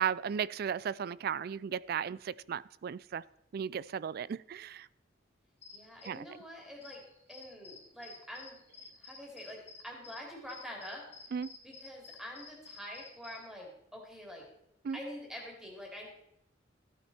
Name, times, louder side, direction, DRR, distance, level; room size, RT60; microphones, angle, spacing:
voice 1, 0.0-3.2 3.5-4.9 6.1-6.2 11.3-11.5 14.8-15.0, right 7 dB, 55° right, 21 dB, 0.3 m, -35 dB
sound 1, 5.6-13.4, left 4 dB, 35° left, 2.0 m, -52 dB
voice 2, 5.7-7.0 7.3-8.6 9.0-11.0 11.6-14.4 14.9-16.1, equal, 5° right, -1 dB, 3.1 m, -46 dB
14.5 x 9.1 x 4.3 m, 0.80 s
head